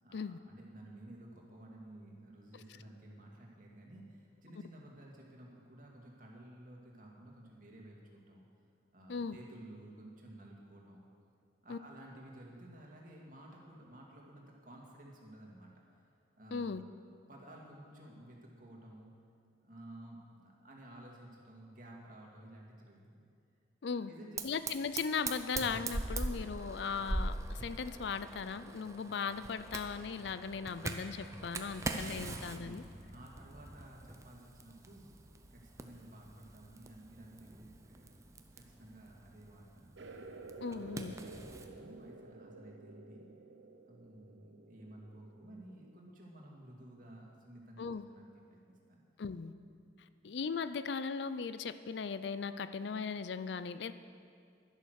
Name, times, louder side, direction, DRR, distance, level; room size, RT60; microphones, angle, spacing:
voice 1, 0.0-8.4 8.9-11.1 11.6-15.7 16.3-16.7 17.3-19.1 19.6-23.3 23.9-24.7 31.8-35.1 35.5-39.9 40.5-43.3 43.8-49.0, right 1 dB, 45° right, -2 dB, 2.3 m, -54 dB
voice 2, 16.5-16.8 23.8-24.1 24.4-32.8 40.6-41.1 47.8-48.0 49.2-49.5 50.2-53.9, left 5 dB, 70° left, 13 dB, 0.4 m, -38 dB
Fire, 24.4-41.7, right 2 dB, 15° right, 0.6 m, -43 dB
sound 1, 40.0-46.1, right 3 dB, 85° right, 0.8 m, -52 dB
11.5 x 11.0 x 6.5 m, 2.3 s
head